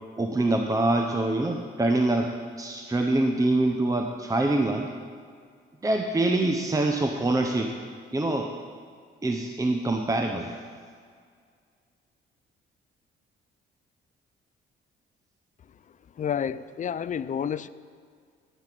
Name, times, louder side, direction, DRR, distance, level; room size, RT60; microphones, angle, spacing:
voice 1, 0.2-2.3 2.6-4.9 5.8-7.7 8.1-8.5 9.2-10.5, right 2 dB, 15° right, 4 dB, 0.8 m, -25 dB
voice 2, 16.2-17.7, left 8 dB, 40° left, 16 dB, 0.4 m, -29 dB
10.0 x 7.0 x 9.2 m, 2.1 s
cardioid pair, 90°, 20 cm